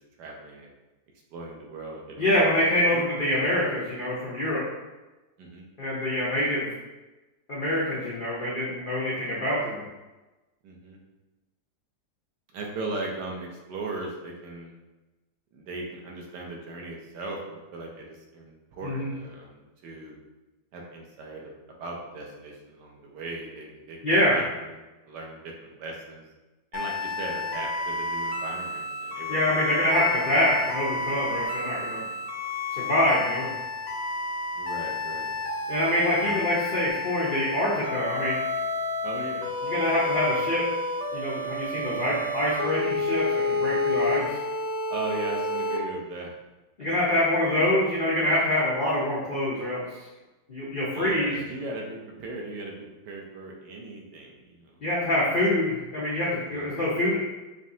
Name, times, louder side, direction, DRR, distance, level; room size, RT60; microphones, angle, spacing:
voice 1, 0.2-0.7 1.3-2.5 2.9-3.3 5.4-5.6 10.6-11.0 12.5-14.7 15.5-20.2 20.7-21.5 21.8-24.8 25.1-26.3 26.7-30.6 34.5-35.4 36.2-36.4 39.0-39.5 44.9-46.4 46.8-47.2 50.9-54.8 56.4-56.8, right 2 dB, 70° right, 0 dB, 1.2 m, -38 dB
voice 2, 2.2-4.6 5.8-6.7 7.5-9.8 18.8-19.1 24.0-24.4 29.3-32.0 32.7-33.5 35.7-38.4 39.6-40.6 41.1-44.4 46.8-49.8 50.5-51.3 54.8-57.2, left 1 dB, 60° left, -7 dB, 0.5 m, -25 dB
sound 1, 26.7-45.8, left 2 dB, 75° left, 1.2 m, -30 dB
5.2 x 2.7 x 2.6 m, 1.1 s
omnidirectional pair, 2.0 m